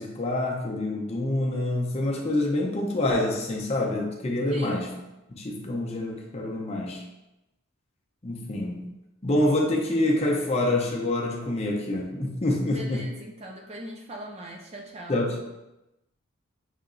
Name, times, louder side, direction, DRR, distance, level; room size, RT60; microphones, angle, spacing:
voice 1, 0.0-4.9 5.3-7.0 8.2-8.8 9.2-13.0 15.1-15.4, left 1 dB, 30° left, 0 dB, 0.5 m, -26 dB
voice 2, 4.5-4.9 12.7-15.2, right 1 dB, 30° right, 1 dB, 0.4 m, -40 dB
6.3 x 2.9 x 2.5 m, 0.98 s
head